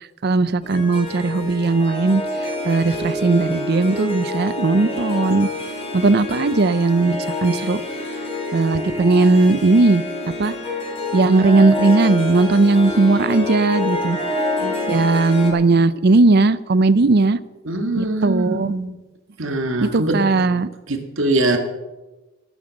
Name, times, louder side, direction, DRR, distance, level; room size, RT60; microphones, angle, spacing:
voice 1, 0.2-2.2 2.6-5.5 5.9-7.8 8.5-10.0 10.4-10.5 11.1-14.2 14.9-17.4 18.0-18.7 19.8-20.7, right 3 dB, 55° right, 16 dB, 0.6 m, -17 dB
Harp, 0.6-15.5, left 2 dB, 30° left, 3.2 m, -27 dB
voice 2, 14.6-15.1 17.7-19.0 19.4-20.2 20.9-21.6, right 2 dB, 75° right, 5 dB, 1.9 m, -23 dB
15.5 x 9.9 x 6.4 m, 1.1 s
head